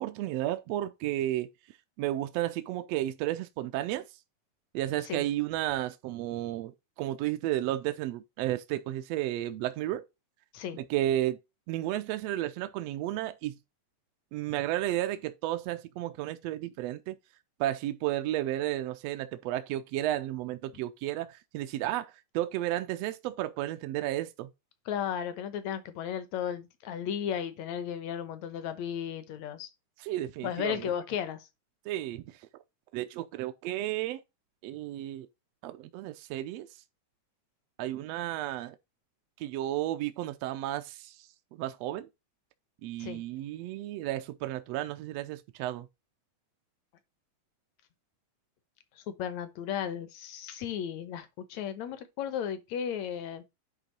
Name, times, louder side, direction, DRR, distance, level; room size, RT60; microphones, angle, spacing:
voice 1, 0.0-1.5 2.0-4.1 4.7-6.7 7.0-10.0 10.8-11.4 11.7-13.6 14.3-17.1 17.6-24.5 30.0-30.9 31.9-32.4 32.9-34.2 34.6-35.3 35.6-36.7 37.8-38.7 39.4-41.1 41.5-42.1 42.8-45.9, right 14 dB, 80° right, 1.5 m, -32 dB
voice 2, 24.9-29.7 30.4-31.5 43.0-43.2 49.0-53.4, left 9 dB, 65° left, 2.1 m, -35 dB
10.0 x 3.8 x 3.9 m
omnidirectional pair, 3.6 m